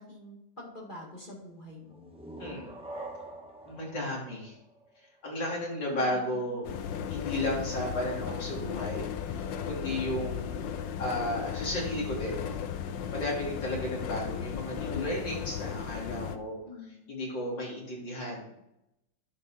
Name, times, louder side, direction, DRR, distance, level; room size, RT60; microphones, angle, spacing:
voice 1, 0.0-2.1 5.9-6.6 16.6-17.1, left 1 dB, 25° left, -3 dB, 2.1 m, -46 dB
sound 1, 1.9-5.4, right 1 dB, 5° right, 1.0 m, -45 dB
voice 2, 3.7-4.5 5.2-6.7 7.1-12.4 13.1-16.6 17.1-18.6, left 1 dB, 75° left, -4 dB, 3.8 m, -34 dB
sound 2, 6.6-16.4, left 8 dB, 90° left, 1.4 m, -35 dB
10.5 x 5.5 x 4.4 m, 0.83 s
omnidirectional pair, 2.0 m